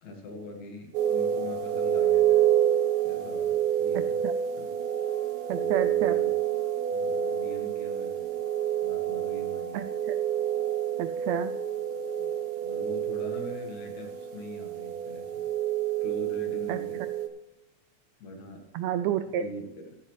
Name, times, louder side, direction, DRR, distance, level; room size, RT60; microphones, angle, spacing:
voice 1, 0.0-2.5 3.0-4.2 4.6-4.7 5.5-6.3 6.9-8.3 8.8-9.8 12.2-12.4 12.6-15.5 16.0-17.0 18.2-18.6 19.2-19.9, left 2 dB, 65° left, 3 dB, 3.0 m, -43 dB
sound 1, 0.9-17.3, right 10 dB, 60° right, 1.7 m, -28 dB
voice 2, 3.9-4.3 5.5-6.2 9.7-10.2 11.0-11.5 16.7-16.8 18.7-19.4, right 10 dB, 90° right, 10 dB, 1.5 m, -30 dB
13.5 x 11.5 x 3.2 m, 0.98 s
omnidirectional pair, 3.7 m